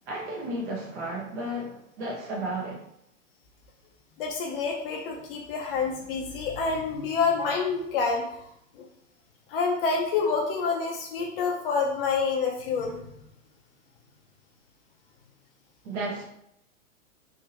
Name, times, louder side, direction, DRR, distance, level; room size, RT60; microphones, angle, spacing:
voice 1, 0.1-2.8 15.8-16.2, right 1 dB, 55° right, -2 dB, 0.9 m, -33 dB
voice 2, 4.2-8.2 8.8-8.9 9.5-13.1, left 5 dB, 45° left, 1 dB, 0.6 m, -27 dB
3.5 x 2.6 x 2.9 m, 0.76 s
hypercardioid pair, 135°, 41 cm